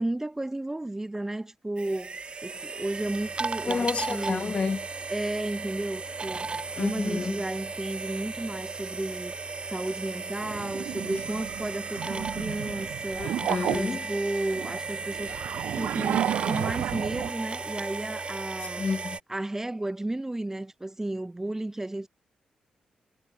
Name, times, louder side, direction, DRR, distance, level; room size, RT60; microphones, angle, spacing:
voice 1, 0.0-4.6 5.1-6.4 6.8-9.3 9.7-13.3 13.7-15.4 15.7-18.9 19.3-22.1, right 1 dB, 15° right, 3.6 m, -33 dB
sound 1, 1.8-19.2, right 4 dB, 40° right, 1.2 m, -35 dB
voice 2, 3.7-4.9 6.8-7.4 13.2-14.1 18.8-19.2, left 4 dB, 45° left, 1.4 m, -30 dB
sound 2, 10.4-13.9 14.5-17.3, right 11 dB, 85° right, 1.2 m, -32 dB
cardioid pair, 55°, 3 cm